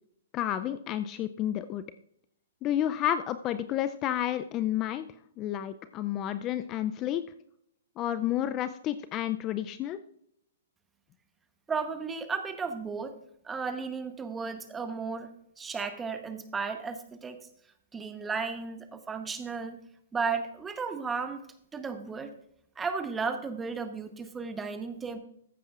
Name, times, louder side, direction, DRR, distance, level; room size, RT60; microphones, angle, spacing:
voice 1, 0.3-1.8 2.6-5.0 5.4-7.2 8.0-10.0, left 11 dB, 25° left, 12 dB, 0.4 m, -30 dB
voice 2, 11.7-13.1 13.4-15.3 15.6-17.4 17.9-19.8 20.1-21.4 21.7-22.3 22.8-25.2, right 5 dB, 10° right, 8 dB, 1.0 m, -34 dB
14.0 x 9.2 x 2.4 m, 0.72 s
hypercardioid pair, 140°, 0 cm